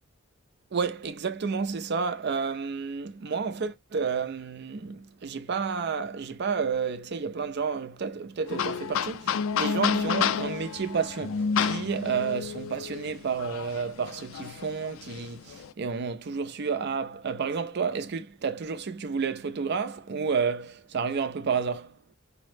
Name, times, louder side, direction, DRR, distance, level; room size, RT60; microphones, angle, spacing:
voice 1, 0.7-21.9, right 5 dB, 55° right, 0.5 m, -30 dB
sound 1, 8.5-15.7, left 6 dB, 75° left, 0.4 m, -30 dB
4.7 x 2.1 x 3.2 m
head